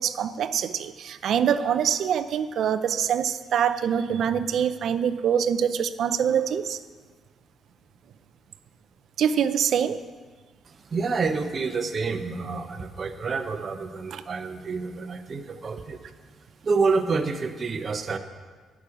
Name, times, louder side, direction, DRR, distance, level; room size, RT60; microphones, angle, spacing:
voice 1, 0.0-6.8 9.2-10.0 14.1-14.2, right 8 dB, 70° right, 12 dB, 0.6 m, -24 dB
voice 2, 10.9-16.0 16.6-18.2, right 4 dB, 45° right, 7 dB, 1.0 m, -28 dB
11.0 x 6.2 x 8.6 m, 1.5 s
cardioid pair, 90°, 0 cm